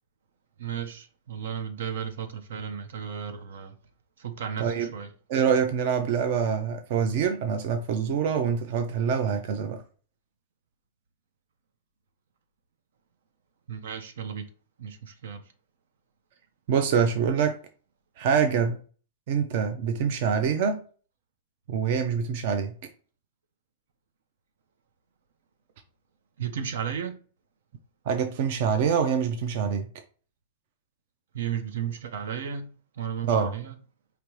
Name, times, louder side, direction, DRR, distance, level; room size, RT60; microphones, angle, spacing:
voice 1, 0.6-3.8 4.2-5.1 13.7-14.4 14.8-15.4 26.4-27.2 31.3-33.8, right 8 dB, 80° right, 0.8 m, -34 dB
voice 2, 5.3-9.8 16.7-17.6 18.2-18.8 19.3-20.8 21.7-22.7 28.1-29.9 33.3-33.5, right 7 dB, 50° right, 0.5 m, -25 dB
5.0 x 2.9 x 3.1 m
supercardioid pair, 165°, 0 cm